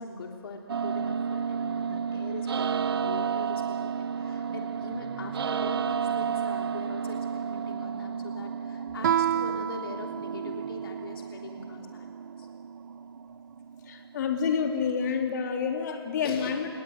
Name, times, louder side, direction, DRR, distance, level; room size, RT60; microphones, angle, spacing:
voice 1, 0.0-12.1 12.4-12.5 16.2-16.5, left 4 dB, 60° left, 1 dB, 3.2 m, -42 dB
sound 1, 0.7-14.6, right 7 dB, 65° right, 1.2 m, -32 dB
Guitar, 9.0-11.5, right 9 dB, 45° right, 0.7 m, -30 dB
voice 2, 13.9-16.7, left 6 dB, 45° left, 2 dB, 3.5 m, -28 dB
29.5 x 20.0 x 9.3 m, 2.4 s
hypercardioid pair, 155°, 14 cm